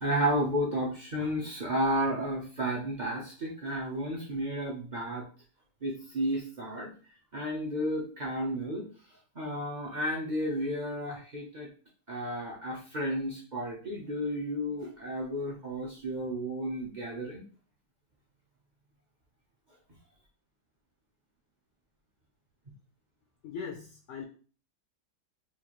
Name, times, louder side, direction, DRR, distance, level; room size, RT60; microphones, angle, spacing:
voice 1, 0.0-5.2 5.8-6.9 7.3-8.9 9.4-11.7 12.1-17.4, equal, 60° right, -3 dB, 0.4 m, -32 dB
voice 2, 23.4-24.2, left 6 dB, 80° left, 3 dB, 0.6 m, -40 dB
4.4 x 2.5 x 2.9 m, 0.39 s
omnidirectional pair, 1.8 m